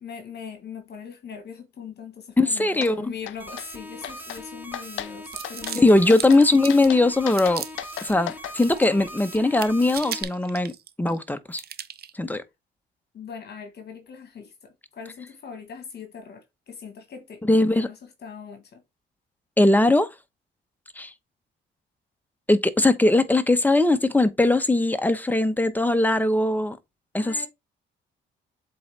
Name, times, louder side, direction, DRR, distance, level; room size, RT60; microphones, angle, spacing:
voice 1, 0.0-6.4 13.1-18.8 27.2-27.5, left 7 dB, 55° left, 1.4 m, -41 dB
voice 2, 2.4-3.1 5.8-7.6 8.0-10.7 11.0-11.6 12.1-12.4 17.4-17.9 19.6-20.1 21.0-21.1 22.5-26.8 27.1-27.5, left 2 dB, 10° left, 0.9 m, -20 dB
sound 1, 2.8-2.9 3.3-3.7 4.0-4.4 4.7-5.1 5.4-5.8 6.1-6.4 6.7-8.5, left 13 dB, 80° left, 0.6 m, -35 dB
sound 2, 3.4-10.2, equal, 10° right, 1.5 m, -41 dB
sound 3, 5.2-7.0 7.4-8.2 8.5-9.1 9.4-11.2 11.5-12.1, right 9 dB, 55° right, 0.7 m, -37 dB
7.7 x 3.9 x 3.3 m
cardioid pair, 90°, 20 cm